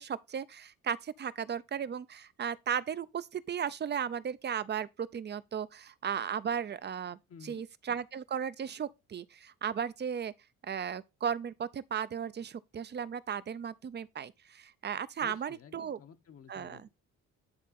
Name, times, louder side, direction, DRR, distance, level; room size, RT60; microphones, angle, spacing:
voice 1, 0.0-7.2 7.4-10.3 10.6-16.0 16.5-16.9, right 8 dB, 35° right, 0.5 m, -36 dB
voice 2, 7.3-7.6 15.2-16.9, left 7 dB, 50° left, 0.9 m, -52 dB
9.6 x 3.6 x 4.1 m
cardioid pair, 90°, 30 cm